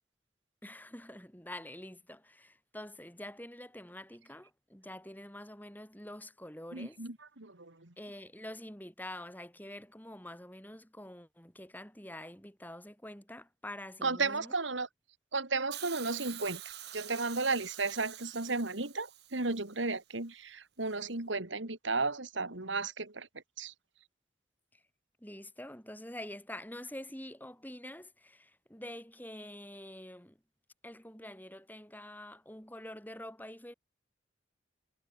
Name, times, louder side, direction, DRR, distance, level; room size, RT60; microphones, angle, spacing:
voice 1, 0.6-7.0 8.0-14.5 24.7-24.8 25.2-30.4 30.8-33.7, left 1 dB, 10° left, 5.4 m, -46 dB
voice 2, 6.7-7.9 14.0-14.9 15.3-23.3 23.6-23.7, right 3 dB, 80° right, 2.7 m, -34 dB
Hiss, 15.7-19.8 20.9-21.0, right 12 dB, 55° right, 4.4 m, -47 dB
head